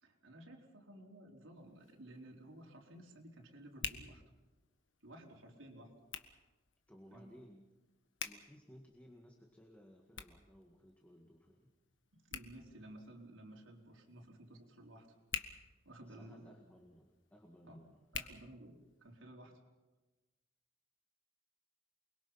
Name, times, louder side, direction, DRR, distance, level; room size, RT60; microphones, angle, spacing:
voice 1, 0.0-4.2 5.0-5.9 7.1-7.4 12.1-15.1 15.8-16.5 17.6-17.8 18.1-19.6, right 1 dB, 90° right, 0 dB, 4.3 m, -55 dB
Hands, 1.5-19.2, left 7 dB, 70° left, 1.5 m, -51 dB
voice 2, 6.9-7.7 8.2-11.7 16.0-18.0, equal, 5° left, 1 dB, 1.8 m, -59 dB
28.5 x 22.0 x 5.7 m, 1.1 s
head